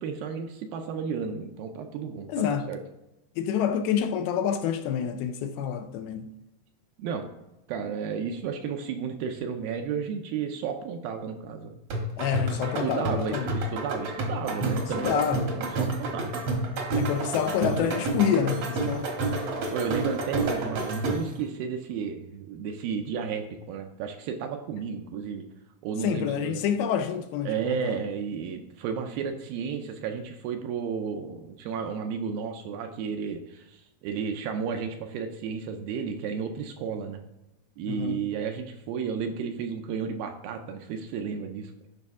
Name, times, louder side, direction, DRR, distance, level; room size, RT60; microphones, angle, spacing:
voice 1, 0.0-2.8 7.0-7.3 7.7-11.8 12.8-15.2 15.6-16.3 19.7-25.5 25.8-26.6 27.5-37.2 37.8-41.7, right 6 dB, 80° right, 2.2 m, -33 dB
voice 2, 2.3-2.7 3.4-6.3 12.2-13.5 15.0-15.5 16.9-19.1 26.0-28.0 37.9-38.3, left 8 dB, 80° left, 2.4 m, -27 dB
sound 1, 11.9-21.4, right 2 dB, 60° right, 1.7 m, -30 dB
11.0 x 5.6 x 3.6 m
omnidirectional pair, 4.6 m